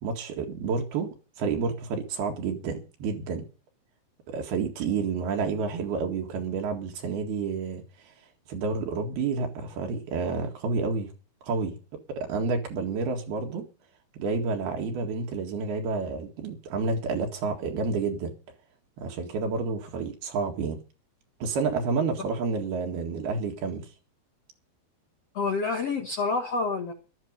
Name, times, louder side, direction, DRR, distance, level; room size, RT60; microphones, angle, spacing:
voice 1, 0.0-3.5 4.3-7.8 8.5-11.1 11.4-11.8 12.2-13.7 14.2-18.3 19.0-20.8 21.4-23.9, right 4 dB, 70° right, 3.8 m, -29 dB
voice 2, 25.3-26.9, left 4 dB, 55° left, 1.8 m, -28 dB
13.0 x 12.5 x 5.4 m
omnidirectional pair, 4.7 m